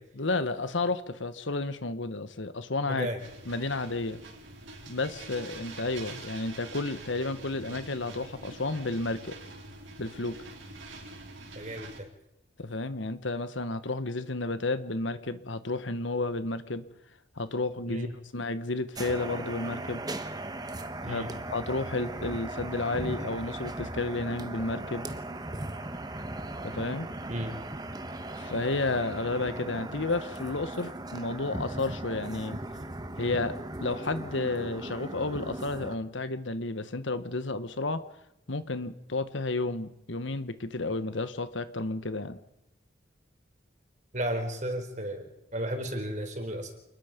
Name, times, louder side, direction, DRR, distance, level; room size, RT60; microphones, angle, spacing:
voice 1, 0.1-3.1 3.4-4.2 4.9-9.4 10.0-10.4 12.6-16.8 17.4-18.1 18.3-20.0 21.0-25.1 26.6-27.1 28.4-32.6 33.2-38.0 38.5-42.4, left 2 dB, 75° left, 12 dB, 1.4 m, -32 dB
voice 2, 2.9-3.2 11.5-12.1 17.9-18.1 21.0-21.3 27.3-27.5 44.1-46.7, right 1 dB, 40° right, 5 dB, 4.2 m, -33 dB
sound 1, 3.2-12.0, right 2 dB, 75° right, 5.1 m, -45 dB
sound 2, 18.9-36.0, right 1 dB, 20° right, 1.3 m, -38 dB
28.5 x 21.0 x 5.3 m, 0.85 s
head